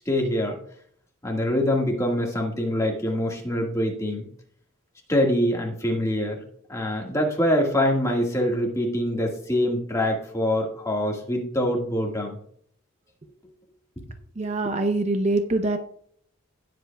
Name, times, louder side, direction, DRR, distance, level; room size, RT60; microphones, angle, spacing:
voice 1, 0.0-0.6 1.2-4.3 5.1-6.4 6.7-12.4, left 1 dB, 15° left, 0 dB, 1.7 m, -24 dB
voice 2, 14.4-15.8, right 2 dB, 30° right, 5 dB, 0.6 m, -24 dB
17.5 x 7.6 x 2.3 m, 0.64 s
head